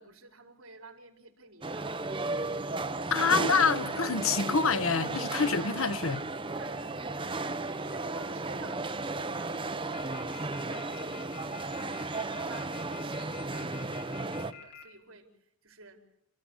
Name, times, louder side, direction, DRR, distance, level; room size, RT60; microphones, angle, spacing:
voice 1, 0.0-2.7 6.5-12.0 12.3-16.1, right 3 dB, 65° right, 4.9 m, -52 dB
sound 1, 1.6-14.5, right 3 dB, 25° right, 1.1 m, -34 dB
voice 2, 3.1-6.2, left 5 dB, 70° left, 1.1 m, -26 dB
sound 2, 9.9-14.8, left 8 dB, 50° left, 6.7 m, -47 dB
28.0 x 15.5 x 8.2 m
head